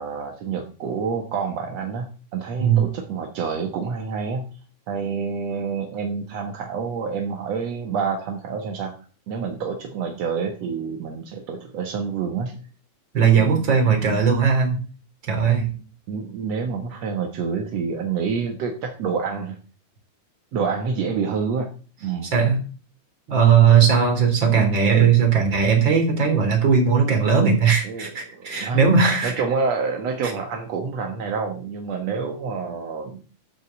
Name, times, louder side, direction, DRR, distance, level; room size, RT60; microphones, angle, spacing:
voice 1, 0.0-4.5 4.9-9.0 9.3-12.6 13.4-13.5 13.8-14.2 16.1-19.6 20.5-21.7 22.0-22.3 27.8-28.8 29.2-33.2, right 5 dB, 60° right, 3 dB, 1.8 m, -28 dB
voice 2, 2.6-2.9 13.1-14.8 15.3-15.7 22.3-22.6 23.3-29.3 30.2-30.3, right 6 dB, 30° right, 3 dB, 3.8 m, -18 dB
13.0 x 7.4 x 7.2 m, 0.39 s
omnidirectional pair, 4.9 m